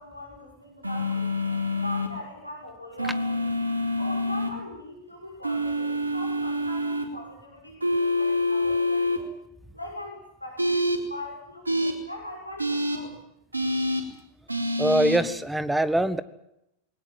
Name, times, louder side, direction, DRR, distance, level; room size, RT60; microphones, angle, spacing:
voice 1, 0.0-3.4 4.0-9.3 9.7-13.2, left 1 dB, 85° left, 0 dB, 6.5 m, -41 dB
sound 1, 0.8-2.1 3.0-4.5 5.4-7.0 7.8-9.2 10.6-11.0 11.6-11.9 12.6-13.0 13.5-14.0 14.5-15.2, left 1 dB, 80° right, 4.1 m, -26 dB
voice 2, 14.8-16.2, right 1 dB, 5° right, 15 dB, 1.5 m, -23 dB
22.0 x 19.0 x 9.2 m, 0.81 s
figure-of-eight pair, 90°, 0 cm